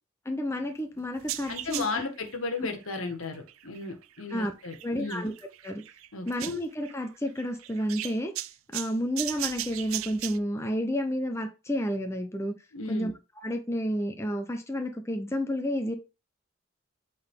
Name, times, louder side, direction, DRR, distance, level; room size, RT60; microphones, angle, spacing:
voice 1, 0.3-1.8 2.6-2.7 4.3-4.5 4.8-5.3 5.6-5.8 6.3-8.3 8.7-12.5 12.9-13.1 13.4-15.9, equal, 15° left, 5 dB, 0.7 m, -30 dB
sound 1, 1.2-10.4, right 14 dB, 85° right, 0.5 m, -37 dB
voice 2, 1.5-5.3 6.1-6.5 12.7-13.1, left 3 dB, 80° left, 5 dB, 1.6 m, -35 dB
8.5 x 4.0 x 3.7 m, 0.29 s
head